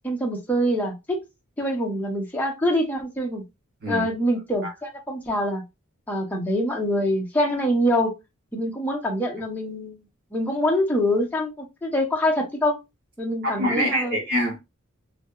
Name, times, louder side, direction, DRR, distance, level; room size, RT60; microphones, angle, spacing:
voice 1, 0.0-1.2 1.6-3.4 3.9-5.6 6.1-8.1 8.5-10.0 10.3-12.8 13.2-14.2, equal, 10° left, 0.6 m, -25 dB
voice 2, 13.4-14.6, equal, 45° right, 0.7 m, -25 dB
2.7 x 2.0 x 2.3 m
head